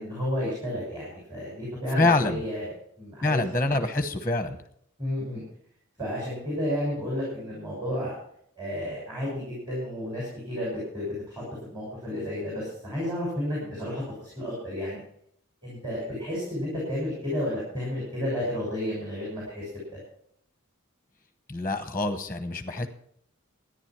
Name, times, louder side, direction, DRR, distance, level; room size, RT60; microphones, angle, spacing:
voice 1, 0.0-3.4 5.0-5.4 6.0-8.1 8.6-15.0 15.6-19.7 19.9-20.0, left 1 dB, 20° right, -5 dB, 6.3 m, -32 dB
voice 2, 2.0-2.4 3.2-4.6 21.5-22.9, left 2 dB, 10° left, 9 dB, 0.9 m, -25 dB
14.5 x 10.0 x 6.0 m, 0.68 s
head